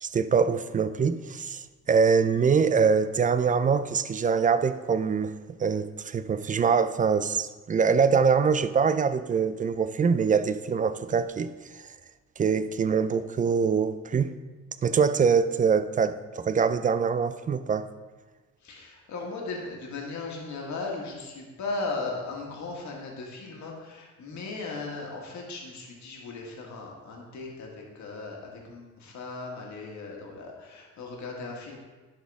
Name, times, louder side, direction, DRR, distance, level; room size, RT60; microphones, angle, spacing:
voice 1, 0.0-1.6 1.9-5.3 5.6-11.5 12.4-14.3 14.8-17.9, right 6 dB, 25° right, 0.4 m, -24 dB
voice 2, 18.6-31.8, left 3 dB, 70° left, 1.6 m, -37 dB
11.0 x 4.2 x 3.5 m
cardioid pair, 90°, 30 cm